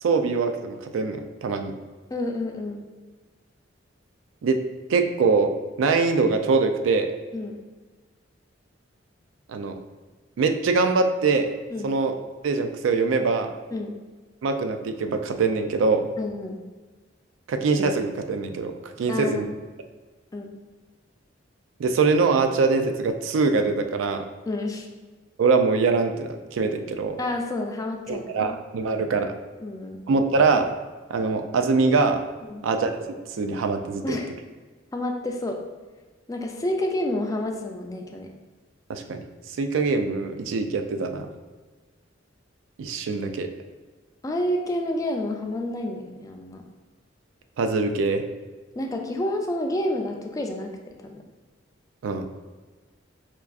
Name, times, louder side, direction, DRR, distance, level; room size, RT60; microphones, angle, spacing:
voice 1, 0.0-1.7 4.4-4.6 4.9-5.5 5.8-7.1 9.5-9.8 10.4-11.5 11.8-12.1 12.4-13.5 14.4-16.1 17.5-19.5 21.8-24.2 25.4-27.2 28.1-29.3 30.1-30.7 31.1-32.2 32.6-32.9 33.3-34.2 38.9-39.2 39.6-41.3 42.8-43.5 47.6-48.2 52.0-52.3, right 4 dB, 90° right, 7 dB, 0.3 m, -23 dB
voice 2, 2.1-2.9 7.3-7.6 11.7-11.9 13.7-14.0 16.2-16.6 19.1-19.5 20.3-20.6 24.5-24.9 27.2-28.6 28.9-29.1 29.6-30.0 32.4-32.7 34.0-34.3 34.9-35.6 36.3-38.3 44.2-46.6 48.8-51.2, left 1 dB, 20° left, 2 dB, 0.3 m, -29 dB
4.5 x 2.4 x 2.4 m, 1.3 s
head